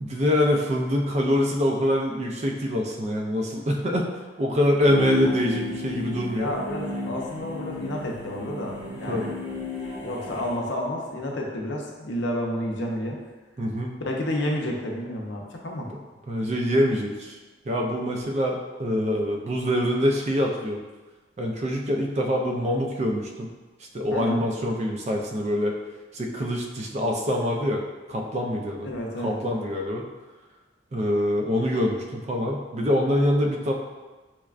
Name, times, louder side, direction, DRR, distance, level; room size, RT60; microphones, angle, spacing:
voice 1, 0.0-4.1 4.4-6.5 9.1-9.3 13.6-13.9 16.3-17.4 17.7-20.8 21.4-23.5 23.9-25.7 26.1-27.8 28.1-28.9 29.2-30.1 30.9-33.7, equal, 35° right, 1 dB, 0.4 m, -25 dB
sound 1, 4.8-10.6, left 3 dB, 50° right, 1.5 m, -32 dB
voice 2, 6.4-9.3 10.0-13.2 14.0-15.9 24.1-24.5 28.8-29.4, left 1 dB, 75° left, -1 dB, 0.6 m, -30 dB
5.7 x 2.2 x 2.4 m, 1.2 s
head